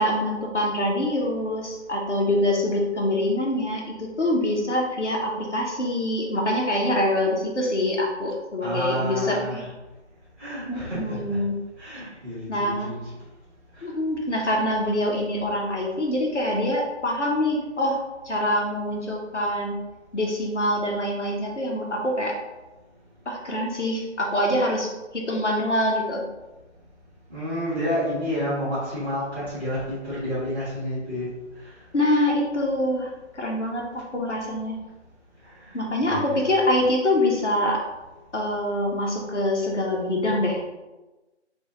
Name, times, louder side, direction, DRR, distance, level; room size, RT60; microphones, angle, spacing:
voice 1, 0.0-9.6 10.7-11.6 11.9-12.0 12.5-13.0 13.8-18.0 18.2-19.8 20.1-22.4 23.3-26.2 31.9-34.8 35.7-37.8 38.3-40.6, left 1 dB, 70° left, -1 dB, 1.0 m, -25 dB
voice 2, 8.6-9.7 10.4-11.4 11.8-12.9 13.7-13.9 27.3-31.3 31.6-31.7 35.6-36.4, equal, 10° right, -15 dB, 1.3 m, -30 dB
4.6 x 2.7 x 3.0 m, 1.1 s
figure-of-eight pair, 150°, 36 cm